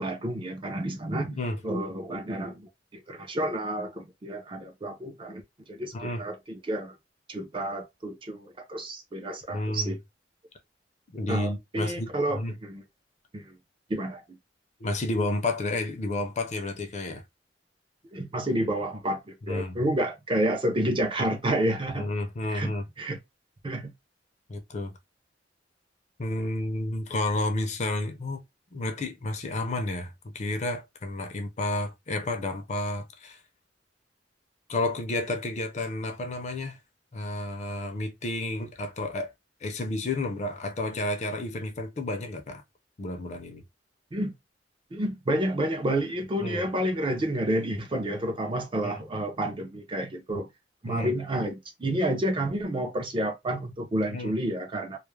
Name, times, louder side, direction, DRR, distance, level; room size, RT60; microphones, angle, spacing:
voice 1, 0.0-1.4 1.6-6.9 7.3-10.0 11.3-12.8 13.3-13.6 13.9-14.4 18.1-22.1 22.5-23.2 23.6-23.9 44.1-44.3 44.9-50.5 50.8-55.0, right 1 dB, 30° right, 0.5 m, -30 dB
voice 2, 9.5-9.9 11.1-12.5 14.8-17.2 19.5-19.8 22.0-22.9 24.5-24.9 26.2-28.4 28.7-33.4 34.7-36.8 37.1-39.3 39.6-42.6 43.0-43.6 46.4-46.6 48.8-48.9 50.9-51.1 54.1-54.3, left 2 dB, 40° left, 0.5 m, -31 dB
2.3 x 2.0 x 3.0 m
head